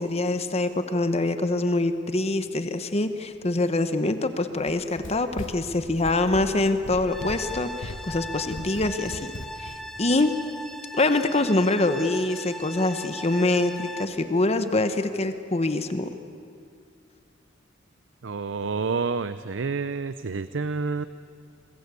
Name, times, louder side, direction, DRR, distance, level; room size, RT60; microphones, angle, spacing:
voice 1, 0.0-9.3 9.6-9.7 10.0-10.3 10.9-16.1, left 2 dB, 35° left, 9 dB, 1.1 m, -25 dB
Run, 4.6-9.8, left 1 dB, 85° left, 1.5 m, -39 dB
sound 1, 7.1-14.0, left 1 dB, ahead, 1.7 m, -39 dB
voice 2, 18.2-21.1, right 4 dB, 85° right, 14 dB, 0.6 m, -28 dB
28.5 x 22.0 x 8.4 m, 2.3 s
head